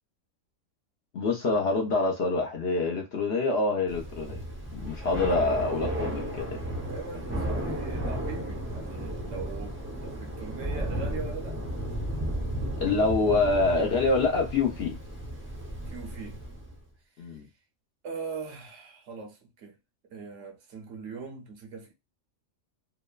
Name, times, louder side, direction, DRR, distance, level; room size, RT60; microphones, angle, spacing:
voice 1, 1.1-4.4 4.7-6.6 12.8-14.9 17.2-17.5, left 3 dB, 55° left, 0.8 m, -26 dB
Thunder / Rain, 3.9-16.8, right 1 dB, 15° right, 0.6 m, -34 dB
voice 2, 6.9-11.6 15.9-16.4 18.0-19.8 20.1-21.9, right 5 dB, 65° right, 1.0 m, -41 dB
3.0 x 2.0 x 2.3 m
omnidirectional pair, 1.5 m